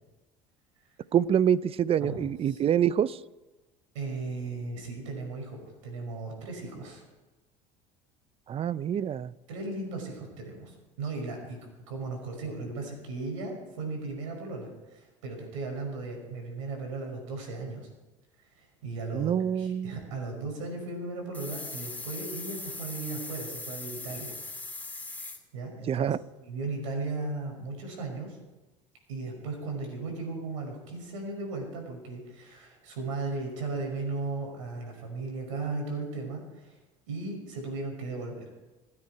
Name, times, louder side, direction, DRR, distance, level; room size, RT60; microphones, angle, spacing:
voice 1, 1.1-3.2 8.5-9.3 19.1-20.0 25.9-26.2, right 9 dB, 35° right, 0.6 m, -26 dB
voice 2, 3.9-7.0 9.5-11.6 11.9-17.9 18.6-24.3 25.5-26.1 26.4-28.4 29.1-36.8 37.1-38.4, right 3 dB, 90° right, 5.8 m, -36 dB
sound 1, 21.3-25.4, left 3 dB, 10° left, 2.4 m, -39 dB
27.5 x 9.8 x 4.7 m
supercardioid pair, 90°, 16 cm